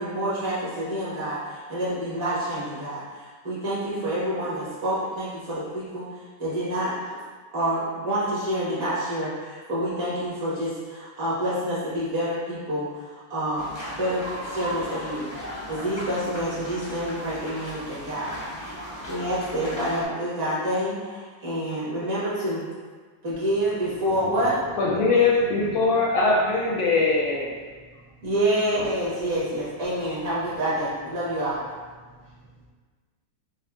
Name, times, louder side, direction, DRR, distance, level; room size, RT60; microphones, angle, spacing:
voice 1, 0.0-6.1 6.4-6.9 7.5-13.7 13.9-15.3 15.7-22.7 23.2-24.6 28.2-31.6, right 1 dB, 55° right, -9 dB, 1.7 m, -28 dB
sound 1, 13.6-20.0, equal, 40° left, 0.6 m, -37 dB
voice 2, 24.0-24.4 24.8-25.8 27.9-28.2 32.0-32.7, right 1 dB, 70° right, -5 dB, 1.2 m, -39 dB
voice 3, 24.8-27.6, left 3 dB, 70° left, -3 dB, 0.9 m, -21 dB
6.1 x 2.3 x 2.3 m, 1.5 s
omnidirectional pair, 1.9 m